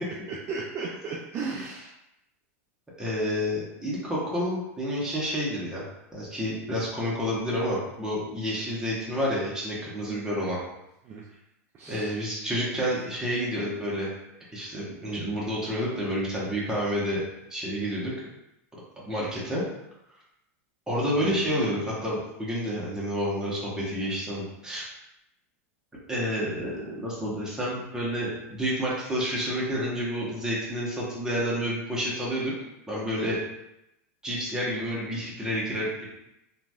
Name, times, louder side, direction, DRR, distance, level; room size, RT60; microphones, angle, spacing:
voice 1, 0.3-1.9 10.1-10.3 11.0-11.2 11.7-12.1 21.2-21.4, right 4 dB, 35° right, -2 dB, 0.4 m, -35 dB
voice 2, 3.0-5.8 6.1-10.6 11.9-14.1 14.5-17.2 17.5-18.1 19.0-19.6 20.9-24.8 26.1-32.5 32.9-33.4 34.2-36.0, equal, 10° right, -7 dB, 1.1 m, -29 dB
2.9 x 2.6 x 2.2 m, 0.87 s
hypercardioid pair, 110°, 8 cm